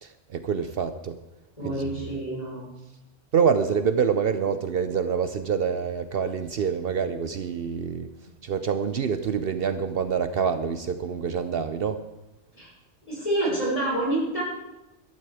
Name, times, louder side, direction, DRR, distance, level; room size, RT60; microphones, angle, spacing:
voice 1, 0.0-1.2 1.6-1.8 3.3-8.1 8.4-12.0, right 6 dB, 65° right, 10 dB, 0.8 m, -26 dB
voice 2, 1.6-2.6 12.6-12.7 13.1-14.4, right 1 dB, 30° left, -5 dB, 6.2 m, -27 dB
14.5 x 12.5 x 4.9 m, 0.98 s
omnidirectional pair, 1.1 m